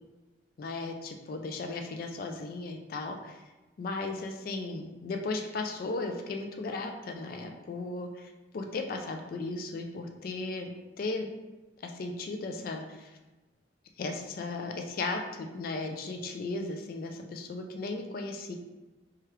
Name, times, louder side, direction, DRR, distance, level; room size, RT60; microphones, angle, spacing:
voice 1, 0.6-3.4 3.8-10.7 11.0-11.3 11.8-13.2 14.0-18.5, left 3 dB, 55° left, 4 dB, 0.3 m, -36 dB
2.9 x 2.3 x 3.2 m, 1.1 s
head